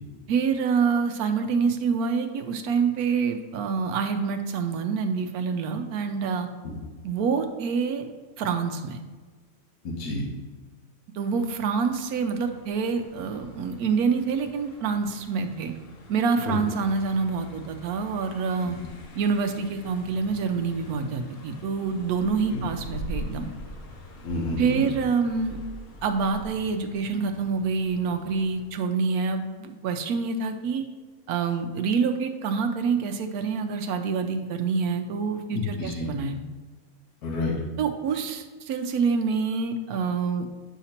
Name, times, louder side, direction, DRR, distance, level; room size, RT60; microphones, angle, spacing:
voice 1, 0.3-6.5 7.0-8.1 8.4-9.0 11.1-15.7 16.1-18.8 19.1-23.5 24.6-25.6 26.0-30.9 31.3-36.4 37.8-40.5, right 5 dB, 80° right, 6 dB, 1.1 m, -26 dB
voice 2, 9.8-10.2 16.4-16.5 18.6-18.7 22.5-22.6 24.2-24.9 35.5-36.1 37.2-37.5, left 2 dB, 80° left, 0 dB, 1.5 m, -30 dB
Car passing by, 11.2-28.7, equal, 50° left, 0.7 m, -44 dB
8.2 x 5.7 x 2.9 m, 1.4 s
omnidirectional pair, 1.6 m